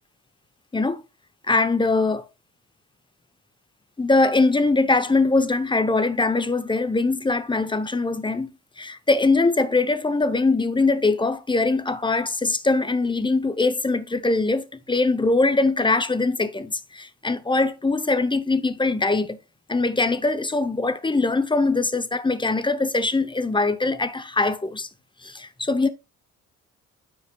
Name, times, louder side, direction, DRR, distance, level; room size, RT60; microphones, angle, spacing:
voice 1, 1.5-2.2 4.0-8.5 8.8-19.4 19.7-24.9 25.2-25.9, left 3 dB, 15° left, 0.8 m, -22 dB
9.5 x 5.5 x 2.3 m
cardioid pair, 100°, 32 cm